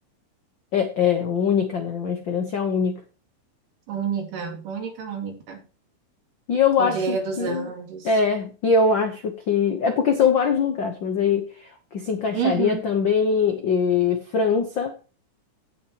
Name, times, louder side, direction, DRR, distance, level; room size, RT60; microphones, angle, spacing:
voice 1, 0.7-3.0 6.5-7.7 8.0-14.9, left 5 dB, 75° left, 6 dB, 1.0 m, -22 dB
voice 2, 3.9-5.6 6.8-8.1 12.3-12.8, right 6 dB, 75° right, 2 dB, 4.0 m, -28 dB
16.5 x 6.3 x 3.0 m, 0.35 s
omnidirectional pair, 3.8 m